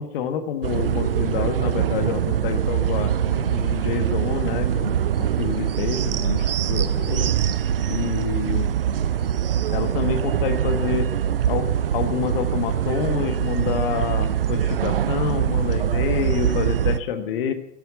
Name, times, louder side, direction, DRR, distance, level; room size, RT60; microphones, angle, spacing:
voice 1, 0.0-7.3 7.9-8.7 9.7-11.1 11.5-11.7 11.9-17.5, left 8 dB, 35° left, 9 dB, 1.4 m, -28 dB
sound 1, 0.6-17.0, right 9 dB, 35° right, 0.6 m, -23 dB
15.5 x 9.2 x 9.4 m, 0.74 s
figure-of-eight pair, 120°, 49 cm